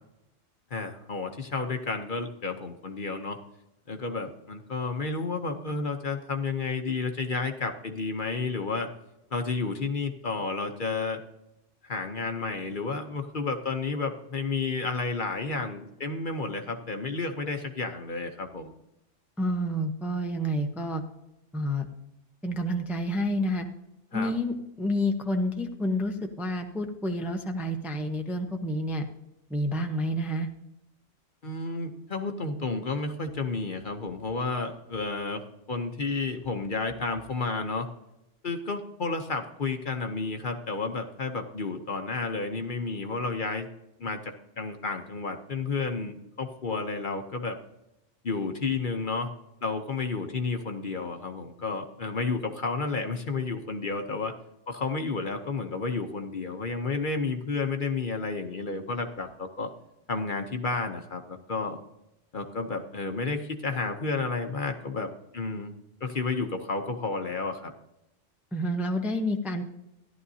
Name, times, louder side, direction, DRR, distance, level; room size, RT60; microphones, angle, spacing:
voice 1, 0.7-3.4 3.9-8.9 9.3-11.2 11.8-18.7 24.1-24.3 31.4-35.4 35.7-37.9 38.4-43.7 44.0-47.6 48.2-49.3 49.6-54.3 54.7-59.7 60.1-61.8 62.3-65.7 66.0-67.7, left 4 dB, 45° left, 5 dB, 0.9 m, -31 dB
voice 2, 19.4-21.0 21.5-21.9 22.4-23.7 24.1-29.1 29.5-30.5 68.5-69.7, equal, ahead, 4 dB, 0.6 m, -29 dB
14.0 x 11.5 x 2.8 m, 0.90 s
omnidirectional pair, 1.3 m